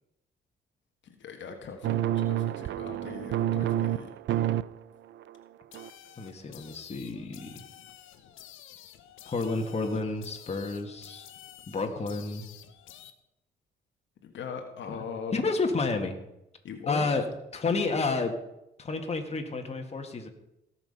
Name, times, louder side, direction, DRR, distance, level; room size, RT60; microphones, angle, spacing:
voice 1, 1.0-4.1 14.2-15.4 16.6-17.2, left 6 dB, 70° left, 4 dB, 1.5 m, -40 dB
sound 1, 1.8-4.7 5.1-5.4 5.7-5.9, right 12 dB, 65° right, 0.5 m, -28 dB
sound 2, 5.7-13.1, left 11 dB, 90° left, 1.0 m, -51 dB
voice 2, 6.2-7.5 9.3-11.3 11.7-12.5 14.9-15.0 15.3-16.1 16.9-17.2 17.5-18.3 18.8-20.3, left 3 dB, 30° left, 4 dB, 1.9 m, -30 dB
18.0 x 6.0 x 5.6 m, 0.87 s
cardioid pair, 90°, 20 cm